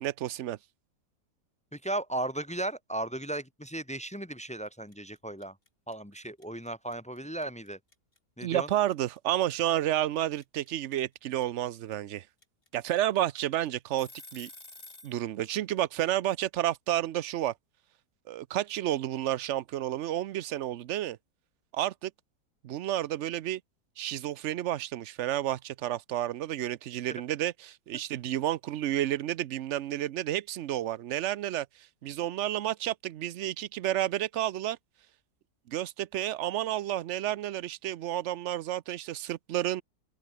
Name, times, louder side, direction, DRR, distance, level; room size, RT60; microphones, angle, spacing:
voice 1, 0.0-0.6 8.4-12.2 12.7-14.5 15.0-17.5 18.3-21.2 21.7-22.1 22.6-23.6 24.0-31.7 32.0-34.8 35.7-39.8, right 12 dB, 60° right, 0.8 m, -31 dB
voice 2, 1.7-5.5 5.9-7.8 8.4-8.7 27.1-27.2, right 1 dB, 10° left, 0.5 m, -36 dB
sound 1, 3.9-4.2 4.4-15.2, left 2 dB, 35° left, 5.3 m, -51 dB
open air
omnidirectional pair, 1.7 m